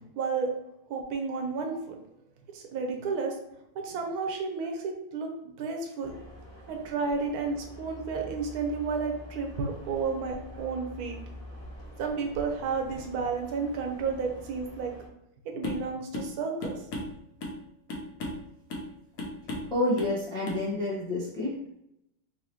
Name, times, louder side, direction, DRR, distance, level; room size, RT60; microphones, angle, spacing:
voice 1, 0.2-0.5 0.9-2.0 2.5-3.3 3.7-6.1 6.7-11.2 12.0-14.9 15.4-16.8, right 4 dB, 65° right, 3 dB, 1.1 m, -32 dB
sound 1, 6.0-15.1, equal, 25° right, 0.9 m, -46 dB
sound 2, 15.6-15.9 16.1-16.3 16.6-17.6 17.9-18.4 18.7-18.9 19.2-19.7 20.0-20.2 20.5-20.6, left 1 dB, 60° left, 1.1 m, -35 dB
voice 2, 19.7-21.8, left 1 dB, 5° left, -5 dB, 0.5 m, -29 dB
4.0 x 3.0 x 2.9 m, 0.80 s
omnidirectional pair, 1.9 m